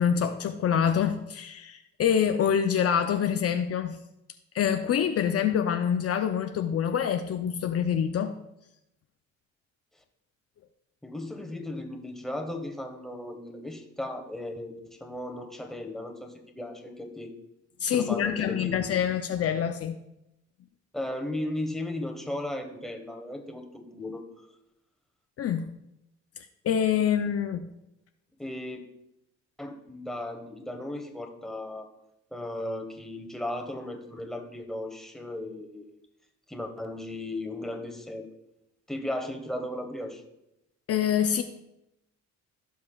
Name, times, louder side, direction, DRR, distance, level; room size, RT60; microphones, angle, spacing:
voice 1, 0.0-4.0 4.5-8.4 17.8-20.0 25.4-25.7 26.6-27.7 40.9-41.4, left 8 dB, 55° left, 0.6 m, -26 dB
voice 2, 11.0-14.7 15.0-17.3 17.9-18.9 20.9-24.2 28.4-28.8 29.6-31.9 32.3-35.8 36.5-38.3 38.9-40.2, left 1 dB, ahead, 1.3 m, -36 dB
16.5 x 5.5 x 2.3 m
cardioid pair, 90°, 30 cm